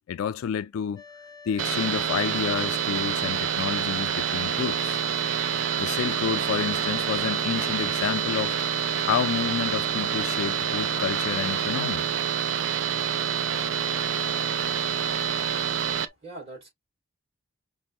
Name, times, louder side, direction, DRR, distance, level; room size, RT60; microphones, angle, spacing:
voice 1, 0.1-1.0 1.5-5.0 5.8-8.6 9.0-12.1, left 8 dB, 85° left, 0.3 m, -29 dB
sound 1, 1.0-16.1, left 4 dB, 20° left, 0.5 m, -46 dB
sound 2, 1.6-16.1, right 8 dB, 65° right, 0.4 m, -27 dB
voice 2, 15.9-16.7, right 2 dB, 30° right, 2.3 m, -43 dB
5.2 x 2.1 x 2.7 m
head